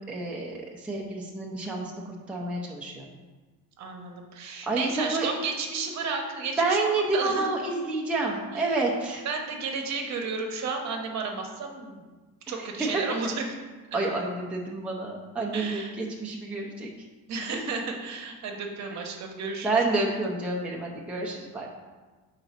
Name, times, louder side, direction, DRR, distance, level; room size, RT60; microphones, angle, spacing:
voice 1, 0.1-3.1 4.7-5.3 6.6-9.3 12.5-12.9 13.9-16.9 19.6-21.7, right 3 dB, 5° right, -3 dB, 0.6 m, -29 dB
voice 2, 3.8-6.8 7.1-7.5 8.5-8.8 9.2-12.0 12.5-13.5 15.5-15.9 17.3-19.8, right 4 dB, 45° right, 2 dB, 1.0 m, -33 dB
4.6 x 4.0 x 5.8 m, 1.3 s
cardioid pair, 120°, 38 cm